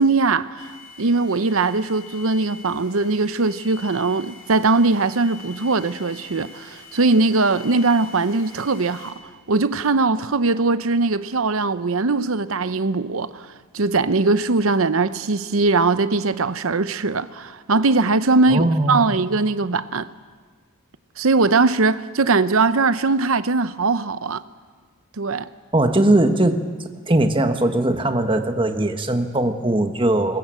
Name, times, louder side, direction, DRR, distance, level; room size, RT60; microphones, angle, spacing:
voice 1, 0.0-9.1 9.5-13.5 13.7-20.1 21.2-24.4 25.2-25.5, right 3 dB, 75° right, 0.8 m, -20 dB
sound 1, 0.6-9.1, left 4 dB, 80° left, 5.1 m, -44 dB
voice 2, 18.5-19.1 25.7-26.6 27.1-30.4, right 1 dB, 25° right, 1.3 m, -19 dB
22.0 x 20.0 x 7.7 m
head